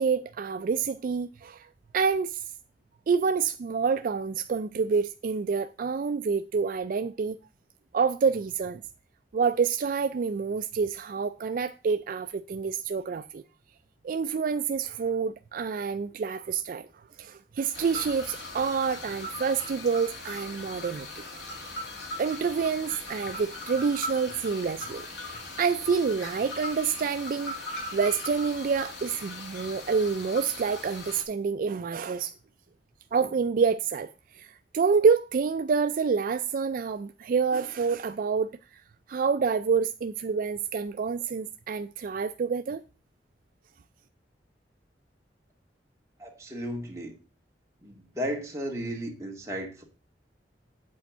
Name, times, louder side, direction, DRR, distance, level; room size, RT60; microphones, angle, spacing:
voice 1, 0.0-1.7 1.9-2.4 3.1-7.4 7.9-8.8 9.3-13.4 14.0-16.9 17.2-21.1 22.2-27.5 27.9-32.3 33.1-38.8 39.1-42.8, right 5 dB, 50° right, 0.3 m, -27 dB
sound 1, 17.7-31.2, left 2 dB, 85° left, 2.4 m, -39 dB
voice 2, 46.2-47.1 47.8-49.8, equal, 15° right, 2.2 m, -34 dB
8.5 x 4.4 x 7.2 m
head